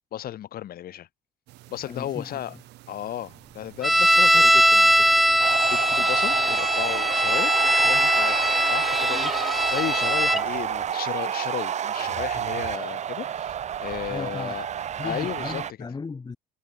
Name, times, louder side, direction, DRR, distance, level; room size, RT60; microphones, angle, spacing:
voice 1, 0.1-1.1 1.7-2.6 2.9-8.3 8.7-13.5 13.8-14.7 15.0-15.6, left 12 dB, 60° left, 3.6 m, -34 dB
sound 1, 1.5-6.5, right 18 dB, 85° right, 7.8 m, -50 dB
voice 2, 1.9-2.6 14.1-14.6 15.0-16.4, left 4 dB, 25° left, 2.6 m, -36 dB
sound 2, 3.8-10.4, equal, ahead, 0.6 m, -20 dB
sound 3, 5.4-15.7, right 9 dB, 45° right, 0.8 m, -29 dB
cardioid pair, 110°, 17 cm